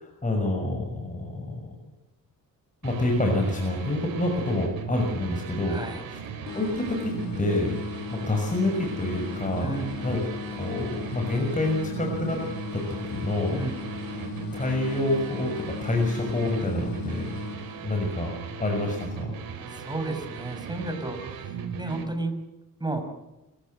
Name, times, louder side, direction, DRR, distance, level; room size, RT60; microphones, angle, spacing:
voice 1, 0.0-1.6 2.8-5.8 6.1-6.2 6.5-7.7 8.1-9.7 10.0-10.2 10.6-12.4 12.7-12.8 13.1-13.6 14.5-17.2 17.8-18.3 18.6-19.3, left 1 dB, 20° left, 1 dB, 6.2 m, -27 dB
sound 1, 2.8-22.0, right 6 dB, 85° right, 4.9 m, -38 dB
voice 2, 5.7-6.0 9.6-10.0 13.5-13.8 19.7-21.2 21.8-22.3 22.8-23.0, right 2 dB, 10° right, 5 dB, 6.3 m, -32 dB
sound 2, 6.5-18.2, left 7 dB, 80° left, 7.6 m, -38 dB
26.5 x 16.0 x 8.0 m, 0.97 s
cardioid pair, 80°, 35 cm